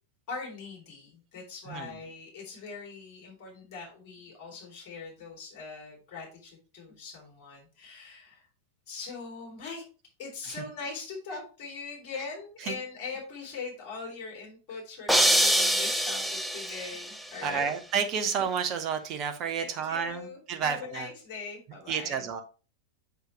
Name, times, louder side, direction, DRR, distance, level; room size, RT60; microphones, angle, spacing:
voice 1, 0.3-8.5 8.9-9.8 10.2-17.7 19.6-22.3, left 4 dB, 40° left, -1 dB, 3.0 m, -41 dB
sound 1, 15.1-17.2, right 1 dB, ahead, 0.7 m, -24 dB
voice 2, 17.4-21.1 21.9-22.4, right 6 dB, 35° right, 7 dB, 0.8 m, -30 dB
7.2 x 5.4 x 3.0 m, 0.34 s
figure-of-eight pair, 90°, 0 cm